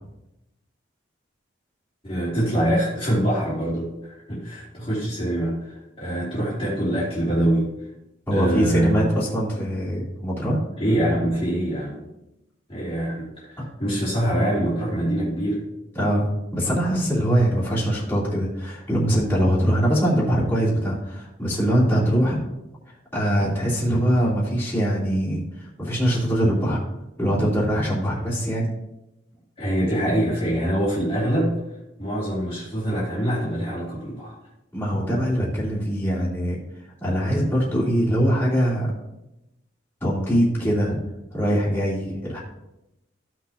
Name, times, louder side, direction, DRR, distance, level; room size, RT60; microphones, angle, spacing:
voice 1, 2.0-7.7 8.3-9.1 10.8-12.0 12.7-15.7 29.6-31.6 32.0-34.4, right 1 dB, 30° left, -9 dB, 2.5 m, -24 dB
voice 2, 8.3-10.6 13.6-13.7 15.9-22.4 23.1-26.8 27.2-28.7 34.7-36.6 37.0-38.9 40.0-41.0 41.3-42.4, equal, 10° left, -8 dB, 3.1 m, -22 dB
15.0 x 6.1 x 2.8 m, 0.92 s
head